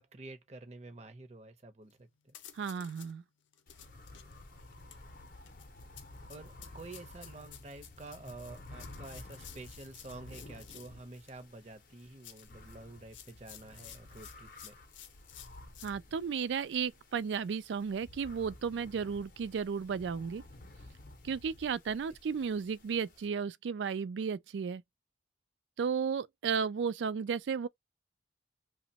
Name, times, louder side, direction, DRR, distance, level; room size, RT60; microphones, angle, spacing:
voice 1, 0.0-2.3 6.3-14.8 21.9-22.0, right 2 dB, 35° right, 0.6 m, -49 dB
sound 1, 1.9-2.0 2.3-3.1 3.5-11.4 12.0-15.9, left 10 dB, 90° left, 0.5 m, -54 dB
voice 2, 2.5-3.2 15.8-20.4 21.2-24.8 25.8-27.7, right 6 dB, 80° right, 0.3 m, -34 dB
sound 2, 3.7-23.3, left 2 dB, 45° left, 0.6 m, -53 dB
2.9 x 2.1 x 2.7 m
head